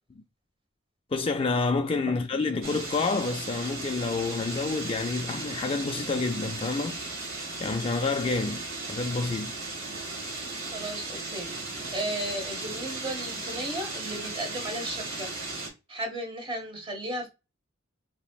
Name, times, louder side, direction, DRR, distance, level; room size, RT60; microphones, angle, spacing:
voice 1, 1.1-7.0 7.6-9.6, left 3 dB, 25° left, 0.3 m, -28 dB
sound 1, 2.6-15.7, right 3 dB, 80° right, 1.7 m, -36 dB
voice 2, 10.7-15.3 15.9-17.3, right 1 dB, 25° right, 1.1 m, -35 dB
5.2 x 2.8 x 2.3 m
head